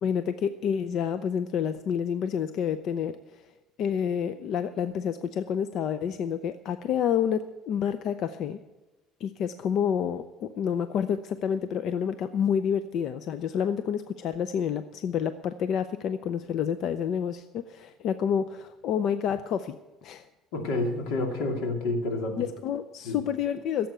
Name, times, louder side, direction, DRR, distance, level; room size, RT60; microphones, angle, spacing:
voice 1, 0.0-3.5 3.8-8.6 9.2-19.8 20.0-20.2 22.4-23.9, left 8 dB, 50° left, 11 dB, 0.5 m, -29 dB
voice 2, 20.5-22.5 23.0-23.2, left 2 dB, 85° left, 3 dB, 2.6 m, -29 dB
16.0 x 7.7 x 6.8 m, 1.1 s
cardioid pair, 145°, 0 cm